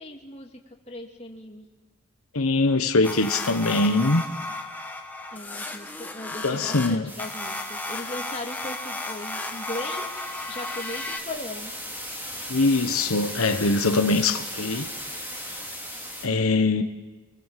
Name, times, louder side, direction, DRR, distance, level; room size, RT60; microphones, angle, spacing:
voice 1, 0.0-1.7 5.3-10.1 10.5-11.7, left 1 dB, 30° left, 2.4 m, -38 dB
voice 2, 2.3-4.2 6.4-7.0 12.5-14.9 16.2-16.8, left 3 dB, 85° left, 1.2 m, -22 dB
sound 1, 3.0-11.2, left 2 dB, 10° left, 1.4 m, -34 dB
sound 2, 7.1-16.3, equal, 10° right, 3.0 m, -38 dB
27.0 x 20.0 x 7.6 m
head